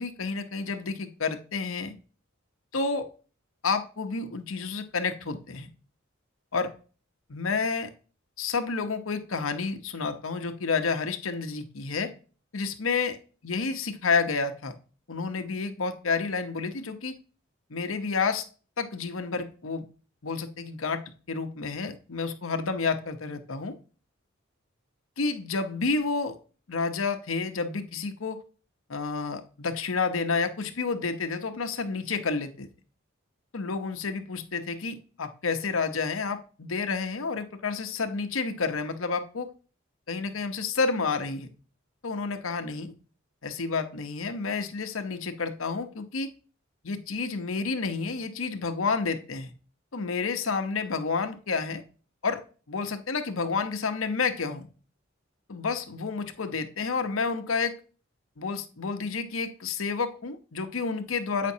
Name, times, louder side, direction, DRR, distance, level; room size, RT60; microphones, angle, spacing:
voice 1, 0.0-1.9 2.7-3.1 3.6-5.7 6.5-6.7 7.3-7.9 8.4-12.1 12.5-13.2 13.4-14.7 15.1-17.1 17.7-18.4 18.8-19.8 20.2-21.0 21.3-23.7 25.2-26.4 26.7-28.4 28.9-32.7 33.5-39.5 40.1-41.5 42.0-42.9 43.4-46.3 46.8-49.5 49.9-51.8 52.2-52.4 52.7-54.7 55.5-57.8 58.4-61.5, left 4 dB, 80° left, 7 dB, 0.9 m, -30 dB
8.3 x 5.1 x 2.7 m, 0.37 s
head